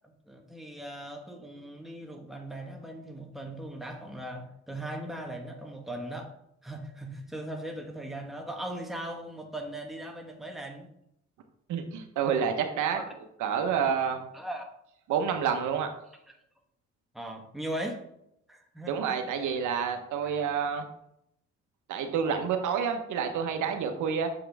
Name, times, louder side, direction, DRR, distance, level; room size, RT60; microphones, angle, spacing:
voice 1, 0.0-6.3 6.6-10.9 12.9-13.0 14.3-14.6 16.3-16.4 17.1-18.1 18.5-19.2 20.2-20.4, right 1 dB, ahead, 2 dB, 1.3 m, -39 dB
voice 2, 11.7-13.0 13.4-14.2 15.1-15.9 18.9-20.9 21.9-24.3, right 7 dB, 80° right, 5 dB, 1.0 m, -28 dB
7.2 x 5.8 x 3.4 m, 0.77 s
cardioid pair, 90°, 30 cm